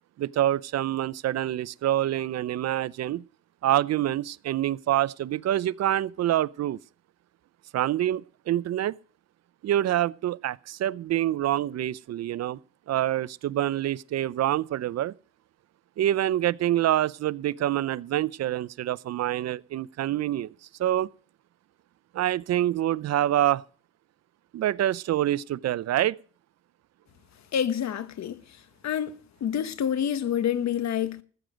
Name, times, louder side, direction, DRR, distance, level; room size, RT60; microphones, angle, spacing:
voice 1, 0.2-3.2 3.6-6.8 7.7-9.0 9.6-12.6 12.9-15.1 16.0-20.5 20.8-21.1 22.1-23.6 24.5-26.2, right 12 dB, 60° right, 0.5 m, -26 dB
voice 2, 27.5-28.4 28.8-29.2 29.4-31.2, left 9 dB, 65° left, 1.2 m, -27 dB
15.0 x 9.2 x 5.0 m
cardioid pair, 90°, 30 cm